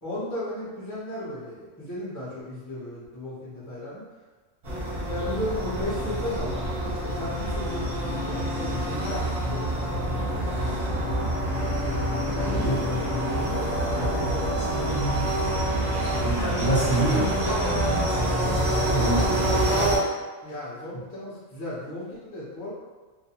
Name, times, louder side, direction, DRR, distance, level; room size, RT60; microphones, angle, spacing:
voice 1, 0.0-4.0 5.1-11.0 11.3-11.5 12.3-13.7 20.4-22.7, left 1 dB, 20° left, -10 dB, 0.4 m, -35 dB
sound 1, 4.6-20.0, right 1 dB, 35° right, 0.7 m, -26 dB
voice 2, 12.5-19.7, right 2 dB, 45° left, -9 dB, 0.9 m, -30 dB
2.4 x 2.2 x 2.8 m, 1.3 s
omnidirectional pair, 1.4 m